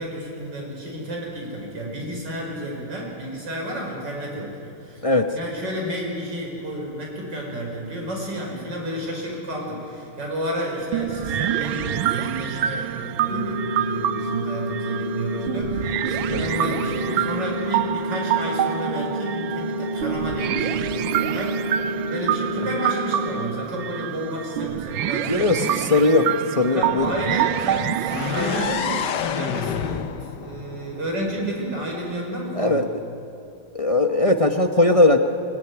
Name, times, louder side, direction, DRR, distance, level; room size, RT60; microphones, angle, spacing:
voice 1, 0.0-5.0 5.3-21.6 22.1-25.8 26.7-30.1 30.4-32.8, equal, 65° right, -1 dB, 6.3 m, -31 dB
sound 1, 10.9-29.1, right 11 dB, 85° right, 1.5 m, -27 dB
sound 2, 13.3-23.3, equal, 30° right, 4.6 m, -29 dB
voice 2, 25.2-27.1 32.6-32.9 33.7-35.2, left 2 dB, 30° left, 4 dB, 0.6 m, -19 dB
sound 3, 28.1-31.9, left 8 dB, 65° left, 1.5 m, -29 dB
25.0 x 18.5 x 9.7 m, 2.8 s
omnidirectional pair, 2.1 m